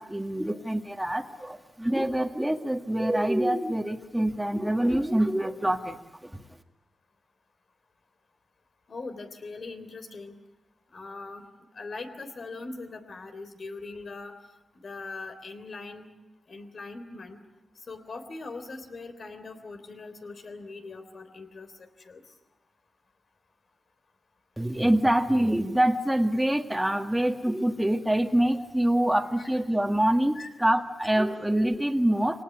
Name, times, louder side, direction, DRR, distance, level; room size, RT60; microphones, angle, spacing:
voice 1, 0.0-6.0 6.2-6.4 24.6-32.4, right 1 dB, 5° right, 2 dB, 1.9 m, -25 dB
voice 2, 8.9-10.3 10.9-11.5 11.7-14.3 14.8-16.1 16.5-17.4 17.8-22.2 29.4-29.5 30.3-30.5 31.0-31.1, left 3 dB, 60° left, 8 dB, 3.4 m, -41 dB
25.5 x 18.5 x 9.4 m, 1.0 s
cardioid pair, 70°, 0 cm